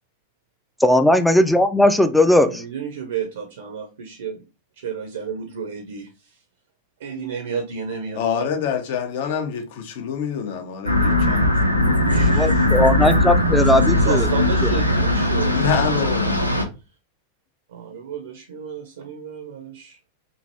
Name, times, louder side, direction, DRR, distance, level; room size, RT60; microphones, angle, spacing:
voice 1, 0.8-2.6 12.3-14.3 14.6-14.7, left 1 dB, 5° left, 0.3 m, -17 dB
voice 2, 2.4-4.4 4.8-6.4 7.0-8.5 12.1-12.7 14.0-15.9 17.7-20.0, right 6 dB, 65° right, 0.5 m, -32 dB
voice 3, 8.2-11.5 11.8-12.0 15.5-16.3, left 7 dB, 50° left, 0.6 m, -26 dB
sound 1, 10.9-16.6, left 1 dB, 90° left, 0.4 m, -19 dB
3.0 x 2.5 x 2.6 m
figure-of-eight pair, 90°, 0 cm